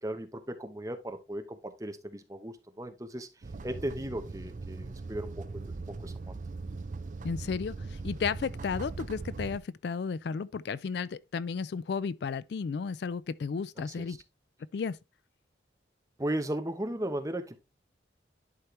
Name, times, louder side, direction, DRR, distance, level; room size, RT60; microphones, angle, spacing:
voice 1, 0.0-3.3 3.6-5.4 5.9-6.3 13.8-14.2 16.2-17.6, right 1 dB, 20° right, 1.0 m, -36 dB
sound 1, 3.4-9.6, right 3 dB, 40° right, 0.5 m, -40 dB
voice 2, 7.2-14.2 14.7-15.0, left 5 dB, 60° left, 0.3 m, -33 dB
11.0 x 4.4 x 3.2 m
head